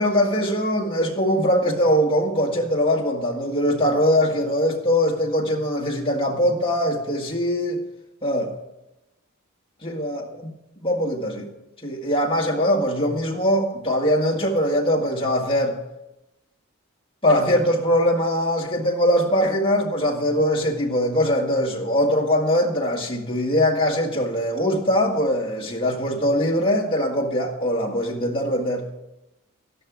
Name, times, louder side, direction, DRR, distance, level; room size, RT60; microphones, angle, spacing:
voice 1, 0.0-7.8 8.2-8.5 9.8-10.5 10.8-11.5 11.8-15.8 17.2-28.8, equal, 25° left, 1.8 m, -22 dB
12.5 x 11.0 x 4.9 m
head